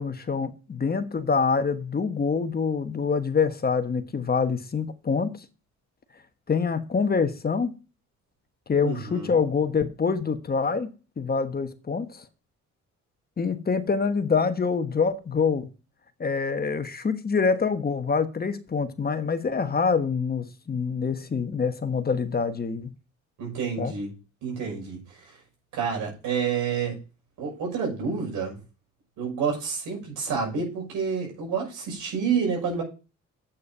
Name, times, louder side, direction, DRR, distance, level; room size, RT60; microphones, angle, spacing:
voice 1, 0.0-5.3 6.5-7.7 8.7-10.9 11.2-12.2 13.4-15.7 16.2-22.9 23.8-23.9, left 5 dB, 30° left, 1.2 m, -25 dB
voice 2, 8.8-9.3 23.4-24.1 24.4-25.4 25.7-27.0 27.4-28.6 29.2-32.8, right 6 dB, 90° right, 6.0 m, -29 dB
8.4 x 6.5 x 5.6 m
cardioid pair, 90°, 30 cm